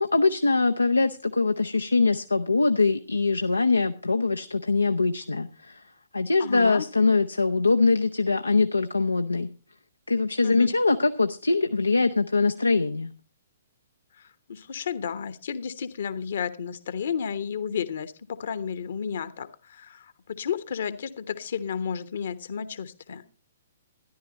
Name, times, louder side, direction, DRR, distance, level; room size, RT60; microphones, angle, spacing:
voice 1, 0.0-5.8 6.1-9.5 10.1-13.1, left 3 dB, 75° left, 8 dB, 0.7 m, -23 dB
voice 2, 6.4-6.9 10.4-10.7 14.2-23.2, left 7 dB, 55° left, 13 dB, 1.2 m, -32 dB
13.5 x 11.5 x 4.1 m, 0.35 s
figure-of-eight pair, 120°, 0 cm